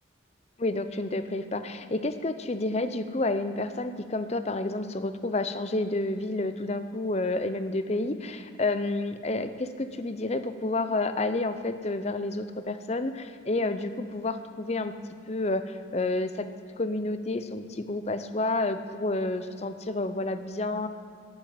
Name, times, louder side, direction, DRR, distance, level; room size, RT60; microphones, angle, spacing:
voice 1, 0.6-14.9 15.3-16.5 16.8-20.9, left 2 dB, 35° left, 10 dB, 0.6 m, -30 dB
12.5 x 8.9 x 7.8 m, 2.5 s
head